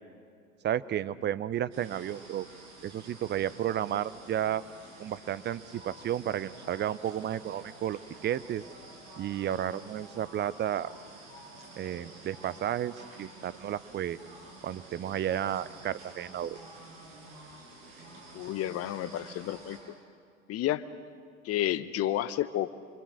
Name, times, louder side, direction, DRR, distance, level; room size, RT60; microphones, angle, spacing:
voice 1, 0.6-2.5 2.8-4.6 5.0-8.6 9.2-10.9 11.8-14.2 14.6-16.6, right 10 dB, 25° right, 16 dB, 0.8 m, -32 dB
sound 1, 1.7-19.8, right 2 dB, 50° right, 7.7 m, -50 dB
voice 2, 18.3-19.8 20.5-20.8 21.4-22.8, left 13 dB, 35° left, 14 dB, 1.1 m, -31 dB
27.5 x 24.0 x 6.5 m, 2.2 s
figure-of-eight pair, 80°, 41 cm